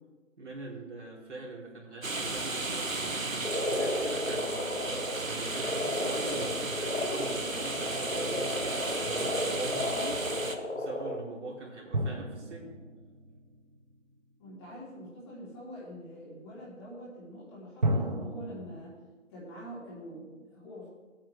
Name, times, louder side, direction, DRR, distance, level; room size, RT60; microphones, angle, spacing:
voice 1, 0.4-3.1 3.7-12.8, right 2 dB, 60° right, -3 dB, 3.6 m, -43 dB
sound 1, 2.0-10.5, right 3 dB, 90° right, 1.5 m, -34 dB
Frog, 3.4-11.2, left 1 dB, 90° left, 1.9 m, -33 dB
sound 2, 7.7-9.1 11.9-14.5 17.8-18.8, right 1 dB, 35° right, 1.0 m, -34 dB
voice 2, 14.4-19.0 19.3-20.9, equal, 20° left, -7 dB, 3.4 m, -45 dB
16.5 x 8.8 x 3.4 m, 1.2 s
figure-of-eight pair, 160°, 39 cm